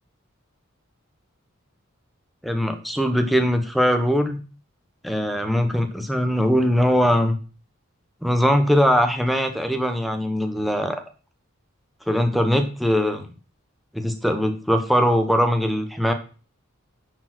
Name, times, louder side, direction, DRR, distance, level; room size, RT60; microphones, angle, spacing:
voice 1, 2.4-4.4 5.0-7.4 8.2-11.0 12.1-13.2 13.9-16.1, equal, ahead, 5 dB, 1.0 m, -21 dB
10.0 x 4.9 x 6.1 m, 0.36 s
head